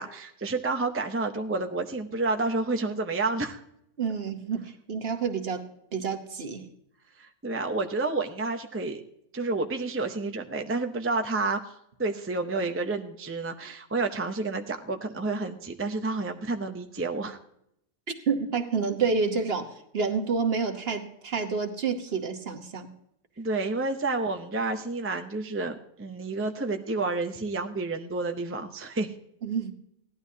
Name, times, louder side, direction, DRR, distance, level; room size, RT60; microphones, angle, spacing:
voice 1, 0.0-3.6 7.2-9.0 9.3-11.7 12.0-17.4 23.4-29.1, right 3 dB, 20° right, 5 dB, 0.3 m, -30 dB
voice 2, 4.0-5.6 5.9-6.7 18.1-22.9 29.4-29.7, right 5 dB, 45° right, 5 dB, 1.2 m, -29 dB
17.5 x 12.0 x 2.8 m, 0.76 s
omnidirectional pair, 1.5 m